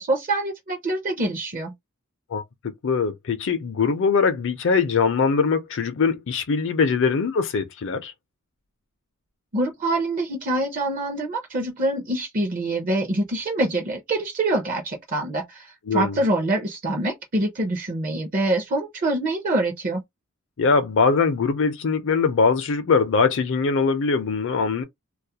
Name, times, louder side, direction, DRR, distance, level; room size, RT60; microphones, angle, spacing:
voice 1, 0.0-1.7 9.5-15.7 15.9-20.0, right 2 dB, 40° right, 0.6 m, -25 dB
voice 2, 2.3-8.1 15.9-16.2 20.6-24.8, left 5 dB, 60° left, 0.5 m, -22 dB
2.3 x 2.1 x 2.7 m
head